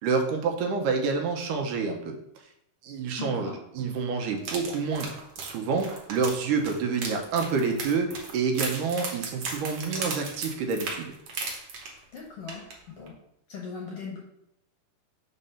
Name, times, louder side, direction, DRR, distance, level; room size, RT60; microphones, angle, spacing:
voice 1, 0.0-2.1 2.8-5.1 5.4-11.1, right 5 dB, 80° right, 3 dB, 2.4 m, -28 dB
voice 2, 3.2-3.6 12.1-13.1 13.5-14.2, left 5 dB, 60° left, -3 dB, 1.7 m, -39 dB
sound 1, 4.4-12.2 12.5-12.7 13.1-13.2, right 4 dB, 60° right, 2.0 m, -36 dB
5.4 x 4.1 x 5.6 m, 0.76 s
omnidirectional pair, 3.7 m